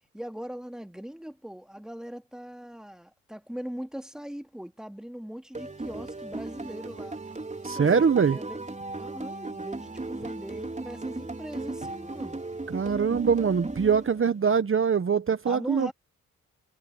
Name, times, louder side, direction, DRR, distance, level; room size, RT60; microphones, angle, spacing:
voice 1, 0.1-7.2 7.7-12.4 15.5-15.9, equal, ahead, 2.5 m, -40 dB
sound 1, 5.5-14.5, right 2 dB, 20° right, 4.7 m, -36 dB
voice 2, 7.6-8.4 12.7-15.9, right 6 dB, 40° right, 1.3 m, -23 dB
supercardioid pair, 60°, 33 cm